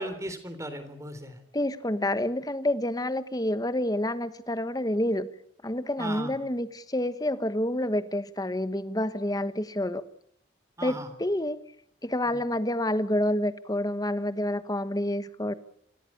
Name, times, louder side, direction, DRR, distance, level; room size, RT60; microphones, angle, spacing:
voice 1, 0.0-1.4 6.0-6.3 10.8-11.1 12.3-12.4, right 1 dB, 15° right, 10 dB, 3.5 m, -37 dB
voice 2, 1.5-5.3 5.6-10.0 10.8-11.6 12.0-15.5, left 1 dB, 20° left, 13 dB, 1.2 m, -28 dB
27.0 x 16.5 x 8.7 m, 0.68 s
head